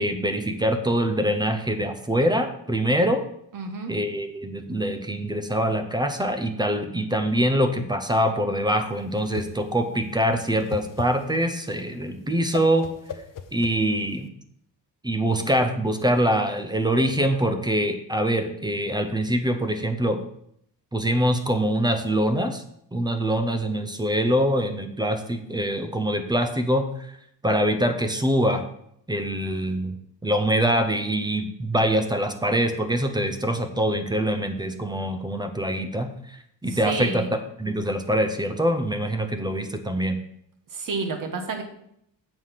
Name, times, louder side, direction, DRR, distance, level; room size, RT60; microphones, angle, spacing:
voice 1, 0.0-3.2 3.9-12.9 13.5-14.3 15.0-20.2 20.9-22.6 22.9-27.1 27.4-28.6 29.1-30.0 30.2-37.2 37.6-40.2, equal, 10° right, 6 dB, 0.5 m, -24 dB
voice 2, 3.5-3.9 36.7-37.3 40.7-41.6, right 4 dB, 45° right, 4 dB, 1.3 m, -30 dB
Whoosh swoosh swish, 8.8-14.3, left 7 dB, 45° left, 0.7 m, -39 dB
7.3 x 4.8 x 5.7 m, 0.72 s
wide cardioid pair, 160°, 44 cm